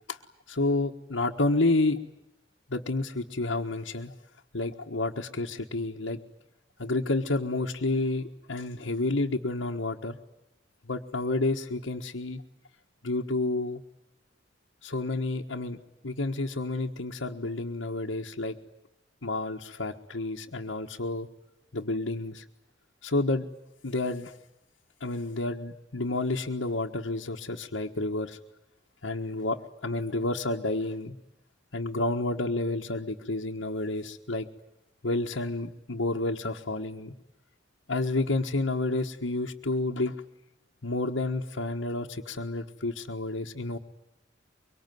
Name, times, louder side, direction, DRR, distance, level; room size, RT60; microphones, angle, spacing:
voice 1, 0.5-2.0 2.7-4.1 4.5-6.2 6.8-10.2 10.8-12.4 13.0-13.8 14.8-15.8 16.0-18.5 19.2-21.3 21.7-22.4 23.0-23.4 23.8-24.4 25.0-28.4 29.0-31.2 31.7-34.5 35.0-37.1 37.9-40.1 40.8-43.8, left 2 dB, 85° left, -1 dB, 1.5 m, -30 dB
24.5 x 23.5 x 9.4 m, 0.87 s
head